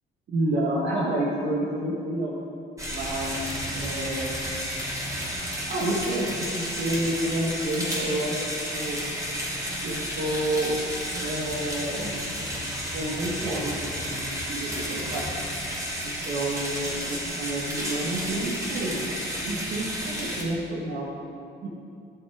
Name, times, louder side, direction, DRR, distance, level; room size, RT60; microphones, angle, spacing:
voice 1, 0.3-2.3 2.9-3.4 3.7-4.4 5.7-9.0 9.8-10.8 11.2-12.1 12.9-13.7 14.1-14.2 14.5-15.3 16.0-19.0 19.4-21.1 21.6-21.7, right 1 dB, 65° right, -5 dB, 1.8 m, -29 dB
sound 1, 2.8-20.4, equal, 15° right, 3.0 m, -32 dB
16.0 x 6.8 x 5.0 m, 2.4 s
cardioid pair, 90°, 20 cm